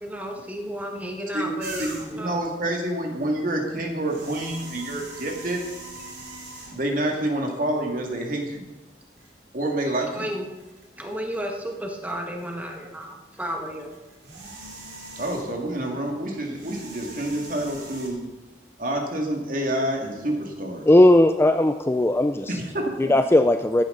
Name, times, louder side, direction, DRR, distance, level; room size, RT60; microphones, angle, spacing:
voice 1, 0.0-2.4 10.1-10.5 11.0-13.9, equal, 10° right, 1 dB, 1.4 m, -33 dB
sound 1, 1.6-2.3 3.9-7.0 7.8-7.9 9.2-9.3 9.8-12.1 12.4-15.7 16.4-18.1, right 2 dB, 80° right, 3.7 m, -41 dB
voice 2, 1.8-5.6 6.7-8.6 9.5-10.3 15.2-18.2 18.8-20.9 22.5-23.1, right 1 dB, 50° right, 1 dB, 2.2 m, -28 dB
voice 3, 20.9-22.5 23.0-23.8, left 1 dB, 15° left, 8 dB, 0.3 m, -17 dB
15.0 x 11.0 x 3.9 m, 1.1 s
head